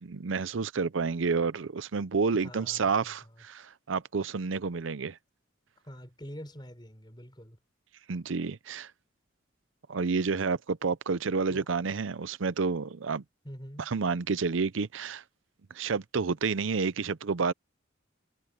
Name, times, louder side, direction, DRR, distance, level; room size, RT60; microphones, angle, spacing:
voice 1, 0.0-5.2 8.1-8.9 9.9-13.2 13.9-15.2 15.7-17.5, right 5 dB, 75° right, 0.6 m, -30 dB
voice 2, 2.4-3.4 5.8-7.6 11.5-11.7 13.4-13.9, equal, 20° left, 5.1 m, -46 dB
head